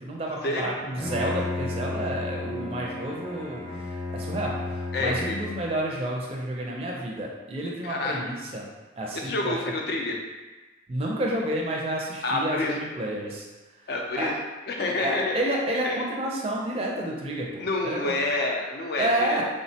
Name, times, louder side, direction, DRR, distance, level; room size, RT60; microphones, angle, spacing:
voice 1, 0.0-8.7 9.0-9.6 10.9-13.5 14.1-14.3 15.0-18.1 19.0-19.4, right 1 dB, 30° right, -2 dB, 0.4 m, -30 dB
Bowed string instrument, 0.8-5.8, left 2 dB, 20° left, 0.7 m, -33 dB
voice 2, 4.9-5.4 7.8-8.2 9.1-10.2 12.2-12.8 13.9-14.4 14.7-15.4 15.8-16.0 17.6-19.4, left 2 dB, 55° left, 1 dB, 0.4 m, -28 dB
3.4 x 2.1 x 2.7 m, 1.2 s
head